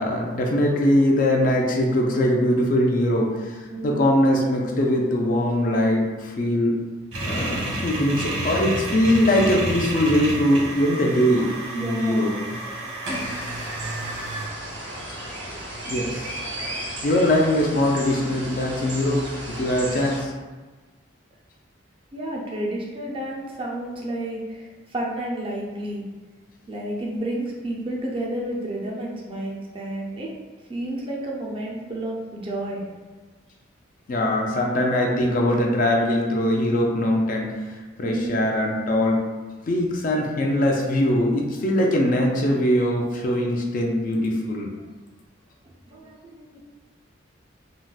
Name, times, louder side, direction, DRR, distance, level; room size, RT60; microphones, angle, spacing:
voice 1, 0.0-6.8 7.2-11.5 11.8-12.3 15.9-16.7 17.0-20.3 34.1-37.5 38.0-39.2 39.7-44.7, left 1 dB, 45° left, 0 dB, 0.4 m, -22 dB
voice 2, 3.7-4.1 11.7-12.2 22.1-26.0 26.7-30.3 30.7-32.8 38.0-38.4 45.9-46.6, right 1 dB, 25° right, -3 dB, 0.4 m, -31 dB
sound 1, 7.1-14.5, right 1 dB, 85° right, 1.2 m, -30 dB
sound 2, 13.1-20.2, right 1 dB, 65° right, 0.7 m, -35 dB
3.9 x 2.1 x 2.3 m, 1.3 s
head